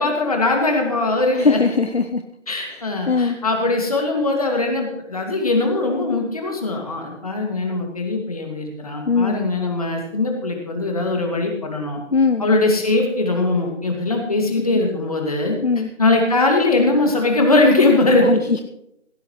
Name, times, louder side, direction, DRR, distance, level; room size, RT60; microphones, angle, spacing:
voice 1, 0.0-1.6 2.5-12.0 12.4-15.6 16.0-18.3, left 2 dB, 30° left, 2 dB, 2.3 m, -20 dB
voice 2, 1.4-2.2 2.7-3.4 9.1-9.4 12.1-12.5 14.7-14.8 15.6-15.9 18.2-18.4, left 4 dB, 60° left, 7 dB, 0.8 m, -20 dB
16.5 x 15.0 x 3.2 m, 0.82 s
figure-of-eight pair, 170°, 36 cm